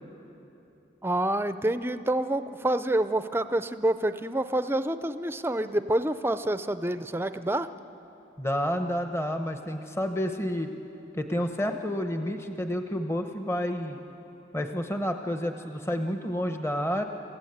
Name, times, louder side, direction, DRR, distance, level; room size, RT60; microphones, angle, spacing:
voice 1, 1.0-7.7, right 1 dB, 10° right, 11 dB, 0.5 m, -27 dB
voice 2, 8.4-10.7 11.1-14.0 14.5-17.0, equal, 15° left, 6 dB, 0.8 m, -30 dB
28.0 x 16.0 x 8.0 m, 3.0 s
head